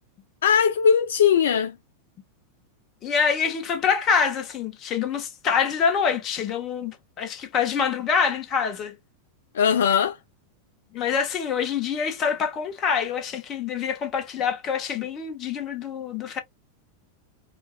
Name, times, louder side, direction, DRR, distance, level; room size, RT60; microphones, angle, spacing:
voice 1, 0.4-1.7 9.5-10.2, left 7 dB, 60° left, 0.3 m, -19 dB
voice 2, 3.0-9.0 10.9-16.4, left 6 dB, 30° left, 1.2 m, -25 dB
4.6 x 2.3 x 2.2 m
figure-of-eight pair, 90°, 0 cm